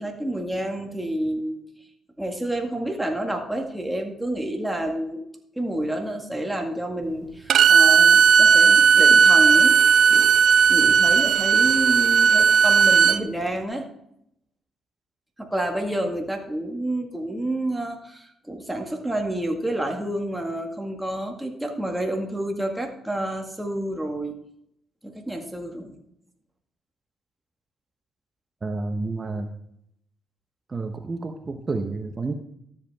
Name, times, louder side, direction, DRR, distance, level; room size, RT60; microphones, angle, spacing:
voice 1, 0.0-1.6 2.2-5.2 5.6-9.8 10.1-10.3 10.7-13.9 15.4-24.3 25.0-26.0, right 1 dB, 5° right, 2 dB, 1.9 m, -29 dB
Bowed string instrument, 7.5-13.2, right 6 dB, 65° right, 0.5 m, -15 dB
voice 2, 28.6-29.5 30.7-32.3, right 3 dB, 30° right, 5 dB, 0.9 m, -30 dB
13.0 x 8.0 x 3.5 m, 0.75 s
cardioid pair, 90°, 0 cm